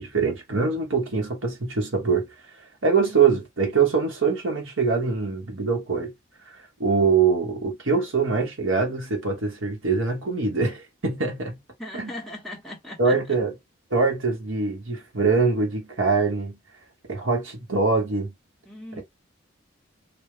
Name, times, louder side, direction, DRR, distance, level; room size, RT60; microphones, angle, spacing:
voice 1, 0.0-2.3 2.8-6.1 6.8-11.6 11.9-12.1 13.0-13.5 13.9-16.6 17.1-18.3, right 4 dB, 70° right, 1.2 m, -23 dB
voice 2, 11.8-13.1 18.7-19.0, left 1 dB, ahead, 1.1 m, -38 dB
3.4 x 2.3 x 3.3 m
head